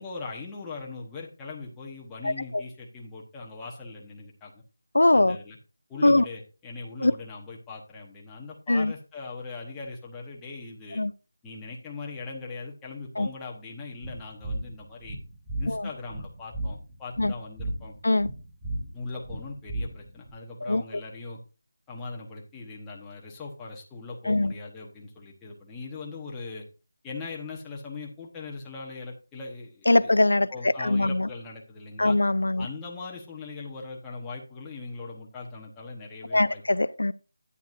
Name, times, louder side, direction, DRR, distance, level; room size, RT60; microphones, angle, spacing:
voice 1, 0.0-4.6 5.1-5.6 5.9-11.0 11.4-15.2 15.6-18.0 18.9-21.4 21.9-26.7 27.0-30.2 30.5-32.2 32.6-36.6, left 3 dB, 10° left, 1.1 m, -40 dB
voice 2, 2.2-2.6 4.9-5.4 6.0-6.3 7.0-7.1 8.7-8.9 11.0-11.1 13.2-13.3 15.7-15.9 17.2-17.3 18.0-18.3 20.6-20.8 24.3-24.5 29.9-31.3 32.0-32.7 36.3-37.1, left 2 dB, 90° left, 0.5 m, -22 dB
sound 1, 14.0-20.3, right 1 dB, 10° right, 4.6 m, -35 dB
10.0 x 9.6 x 2.6 m
figure-of-eight pair, 175°, 0 cm